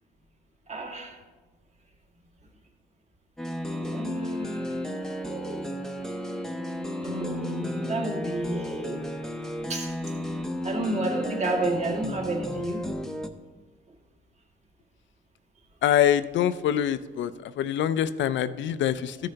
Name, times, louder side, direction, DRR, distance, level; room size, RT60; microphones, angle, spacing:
voice 1, 0.7-1.2 3.8-4.9 5.2-5.7 7.0-9.0 9.7-9.9 10.2-10.3 10.6-12.8, right 2 dB, 35° right, 0 dB, 1.8 m, -31 dB
sound 1, 3.4-13.3, equal, 5° left, 0.7 m, -33 dB
voice 2, 15.8-19.2, left 10 dB, 70° left, 13 dB, 0.5 m, -25 dB
14.0 x 6.4 x 2.9 m, 1.3 s
cardioid pair, 90°, 20 cm